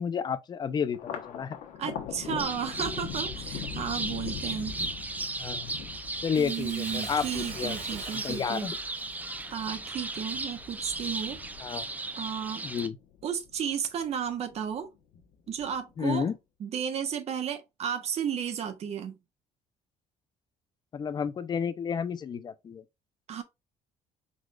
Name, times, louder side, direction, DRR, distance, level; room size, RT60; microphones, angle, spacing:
voice 1, 0.0-1.6 5.4-5.7 6.2-7.7 8.1-8.8 11.6-11.9 12.6-13.0 16.0-16.4 20.9-22.8, left 7 dB, 35° left, 0.6 m, -31 dB
Thunder, 0.9-13.6 14.0-14.8 15.1-16.0, left 7 dB, 75° left, 1.2 m, -42 dB
voice 2, 1.8-4.8 6.4-8.7 9.5-11.4 12.2-12.7 13.2-14.9 15.5-16.3 16.6-19.2 23.3-23.4, right 8 dB, 55° right, 1.2 m, -33 dB
sound 1, 2.4-12.9, right 2 dB, 10° right, 0.6 m, -36 dB
Bathtub (filling or washing), 6.3-10.9 11.4-11.5, right 5 dB, 90° right, 2.1 m, -45 dB
4.7 x 4.0 x 2.4 m
cardioid pair, 115°, 13 cm